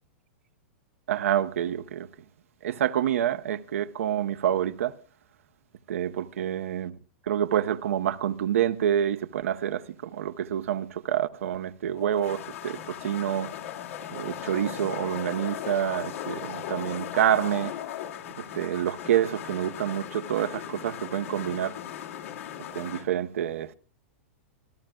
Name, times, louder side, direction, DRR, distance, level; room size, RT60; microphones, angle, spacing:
voice 1, 1.1-2.1 2.6-4.9 5.9-6.9 7.3-9.8 10.1-13.5 14.1-17.7 18.4-21.7 22.8-23.7, right 10 dB, 85° right, 0.7 m, -27 dB
sound 1, 12.0-23.0, left 10 dB, 80° left, 2.2 m, -37 dB
26.5 x 13.5 x 2.3 m
hypercardioid pair, 135°, 7 cm